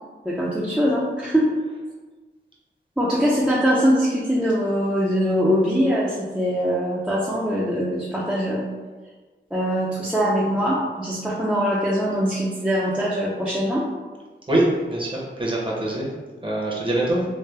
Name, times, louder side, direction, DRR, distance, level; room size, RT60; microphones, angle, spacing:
voice 1, 0.2-1.6 3.0-8.6 9.5-13.8, equal, 5° right, -6 dB, 0.5 m, -22 dB
voice 2, 14.5-16.1 16.4-17.3, right 1 dB, 25° right, -4 dB, 0.8 m, -23 dB
3.2 x 2.1 x 3.2 m, 1.3 s
wide cardioid pair, 65°, 20 cm